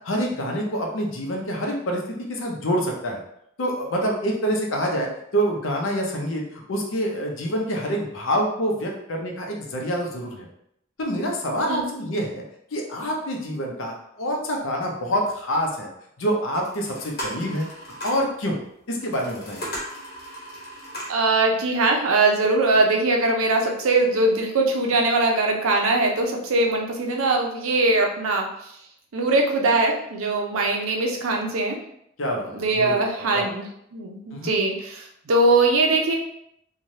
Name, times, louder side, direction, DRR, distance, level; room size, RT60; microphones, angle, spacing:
voice 1, 0.0-3.2 3.6-10.5 11.0-12.4 12.7-15.9 16.2-17.7 18.0-18.6 18.9-19.6 32.2-33.5 34.3-34.5, equal, 70° left, 0 dB, 0.6 m, -26 dB
sound 1, 16.5-18.3 19.0-21.3, equal, 50° left, 0.9 m, -36 dB
voice 2, 21.1-28.5 29.1-31.8 32.5-33.6 33.9-36.2, right 2 dB, 90° right, 1 dB, 0.6 m, -21 dB
3.1 x 2.3 x 2.7 m, 0.74 s
head